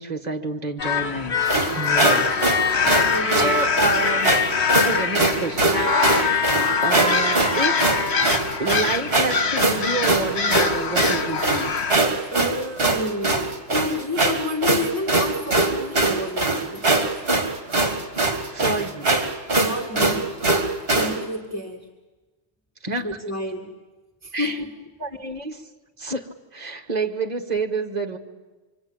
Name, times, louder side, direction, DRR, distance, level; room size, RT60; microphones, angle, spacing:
voice 1, 0.0-1.4 1.7-4.3 4.8-6.5 6.8-7.9 8.6-11.7 18.5-19.1 22.8-23.1 24.3-24.6 25.0-25.7 26.0-28.2, right 3 dB, 40° right, 5 dB, 1.8 m, -29 dB
sound 1, 0.8-12.0, left 5 dB, 70° left, 1.3 m, -26 dB
sound 2, 0.8-5.3 5.7-8.3, left 5 dB, 45° left, 1.2 m, -25 dB
sound 3, 1.5-21.2, right 2 dB, 55° right, 2.5 m, -22 dB
voice 2, 2.8-3.8 12.3-16.9 19.6-20.3 20.9-21.9 23.0-23.7 24.2-24.7, left 1 dB, 15° left, 0 dB, 2.2 m, -30 dB
25.5 x 25.0 x 8.8 m, 1.2 s
omnidirectional pair, 1.1 m